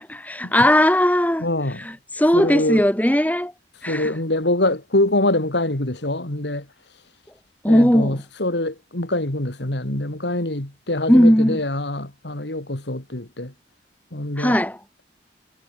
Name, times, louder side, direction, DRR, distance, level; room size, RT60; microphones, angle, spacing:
voice 1, 0.1-1.4 2.2-3.5 3.8-4.1 7.6-8.2 11.1-11.6 14.4-14.8, equal, 10° left, 1.7 m, -17 dB
voice 2, 1.4-1.9 2.3-2.9 3.9-6.7 7.7-13.5 14.1-14.6, left 1 dB, 75° left, 2.9 m, -24 dB
head